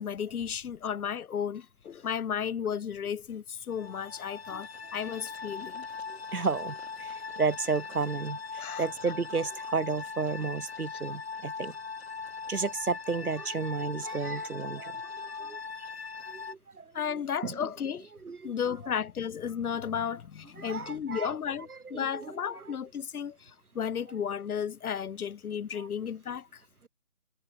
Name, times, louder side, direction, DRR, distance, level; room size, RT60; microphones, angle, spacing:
voice 1, 0.0-5.9 8.6-8.9 16.9-18.1 18.4-26.6, left 8 dB, 80° left, 0.8 m, -34 dB
sound 1, 3.7-16.5, left 5 dB, 45° left, 1.7 m, -40 dB
voice 2, 6.1-11.8 12.5-15.9 16.3-17.6 18.2-18.5 20.6-21.3 21.7-22.6 25.8-25.9, right 4 dB, 85° right, 2.2 m, -33 dB
hypercardioid pair, 170°, 43 cm